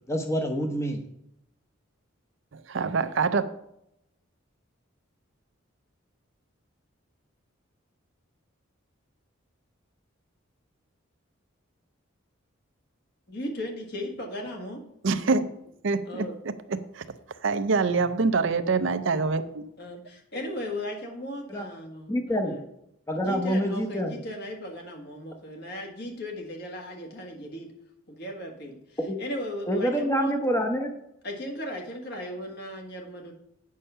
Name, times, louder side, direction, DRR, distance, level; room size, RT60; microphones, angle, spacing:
voice 1, 0.1-1.0 21.5-21.6 22.1-22.5 23.1-24.1 29.1-29.2 29.7-30.9, equal, 15° left, 4 dB, 0.8 m, -26 dB
voice 2, 2.7-3.4 15.0-15.5 15.8-16.3 16.7-17.0 17.4-19.6, right 4 dB, 65° right, 11 dB, 0.5 m, -25 dB
voice 3, 13.3-14.8 16.1-16.4 19.8-22.6 23.1-27.7 28.1-30.3 31.2-33.3, left 1 dB, 50° left, 2 dB, 1.6 m, -37 dB
8.5 x 5.6 x 5.5 m, 0.79 s
head